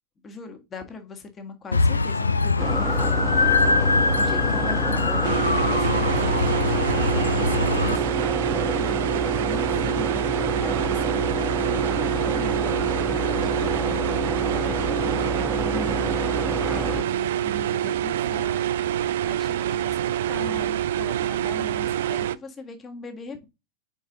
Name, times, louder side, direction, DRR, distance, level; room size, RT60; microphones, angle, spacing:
voice 1, 0.2-6.5 7.0-10.2 10.6-14.1 14.5-16.2 16.7-18.6 19.2-20.0 20.3-23.4, left 3 dB, 20° left, 1.5 m, -40 dB
sound 1, 1.7-8.0, left 3 dB, 80° left, 0.4 m, -22 dB
sound 2, 2.6-17.0, right 1 dB, ahead, 0.5 m, -29 dB
sound 3, 5.2-22.4, right 11 dB, 55° right, 0.4 m, -26 dB
5.5 x 4.7 x 3.7 m
figure-of-eight pair, 90°, 0 cm